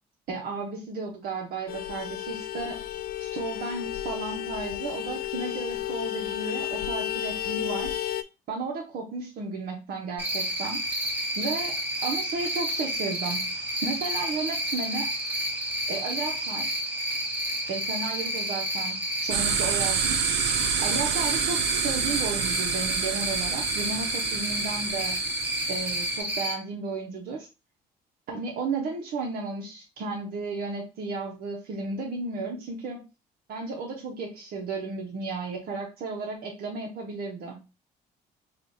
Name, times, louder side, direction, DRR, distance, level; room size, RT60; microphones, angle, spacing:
voice 1, 0.3-2.8 3.2-7.9 8.5-10.8 11.4-11.8 12.0-13.5 13.8-15.1 15.9-16.7 17.7-20.3 20.8-25.2 25.7-27.5 28.3-33.0 33.5-37.6, right 3 dB, 65° right, -1 dB, 1.0 m, -33 dB
Vehicle horn car horn honking, 1.7-8.2, left 12 dB, 65° left, 0.4 m, -32 dB
Cricket, 10.2-26.5, equal, 10° right, 1.3 m, -30 dB
sound 1, 19.3-26.2, right 8 dB, 85° right, 0.6 m, -29 dB
3.3 x 2.5 x 4.0 m, 0.28 s
cardioid pair, 110°, 17 cm